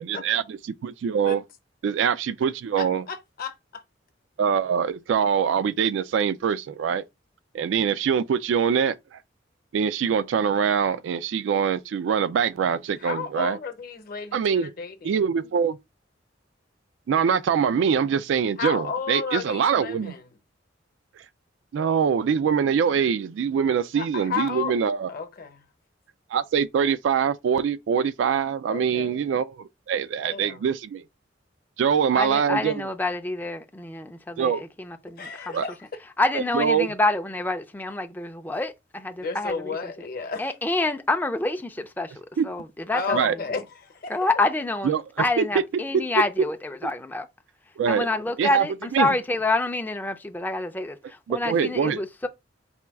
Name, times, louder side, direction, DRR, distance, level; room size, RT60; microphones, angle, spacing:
voice 1, 0.1-1.4 1.8-3.0 4.4-7.0 7.5-9.2 9.7-13.6 14.3-14.7 15.0-15.8 17.1-20.1 21.7-25.1 26.3-31.0 31.8-32.8 34.4-34.6 35.5-35.7 36.5-36.9 42.4-42.5 43.1-43.4 44.8-45.0 45.4-45.5 45.9-46.2 47.8-48.1 48.4-48.7 48.9-49.1 51.3-52.0, right 7 dB, 80° right, 0.3 m, -24 dB
voice 2, 2.8-3.8 13.0-15.3 18.6-20.2 23.9-24.7 25.1-25.6 28.7-29.2 30.2-30.6 35.2-35.8 39.2-40.5 42.9-44.2, left 5 dB, 50° left, 0.8 m, -33 dB
voice 3, 32.1-35.6 36.2-40.1 40.4-43.6 44.1-44.9 45.2-47.3 47.9-52.3, left 2 dB, 10° left, 0.4 m, -27 dB
4.3 x 2.2 x 3.4 m
head